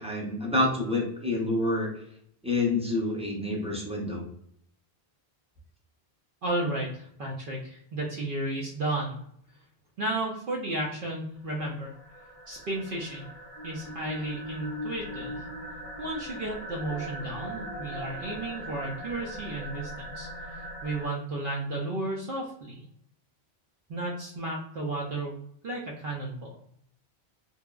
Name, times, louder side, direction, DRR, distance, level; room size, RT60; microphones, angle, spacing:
voice 1, 0.0-1.9 2.4-4.3, left 2 dB, 10° right, -3 dB, 0.4 m, -28 dB
voice 2, 6.4-9.2 10.0-11.9 12.5-13.3 13.6-15.4 16.0-22.7 23.9-25.4 25.6-26.5, right 2 dB, 60° right, -3 dB, 0.7 m, -33 dB
sound 1, 11.4-21.1, equal, 20° left, 1.0 m, -40 dB
3.0 x 2.0 x 2.2 m, 0.69 s
omnidirectional pair, 1.1 m